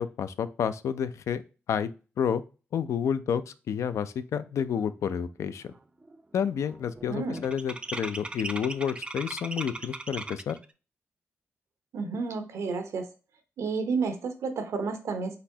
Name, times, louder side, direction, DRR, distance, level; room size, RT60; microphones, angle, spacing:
voice 1, 0.0-1.4 1.7-1.9 2.2-2.4 2.7-5.7 6.3-10.6, left 8 dB, 80° left, 13 dB, 0.4 m, -30 dB
sound 1, 5.0-5.1 5.4-5.8 6.0-10.6, right 2 dB, 20° right, 0.4 m, -39 dB
voice 2, 7.1-7.4 11.9-13.1 13.6-15.4, right 4 dB, 90° right, 7 dB, 0.8 m, -31 dB
4.1 x 4.1 x 2.7 m, 0.33 s
wide cardioid pair, 105°, 5 cm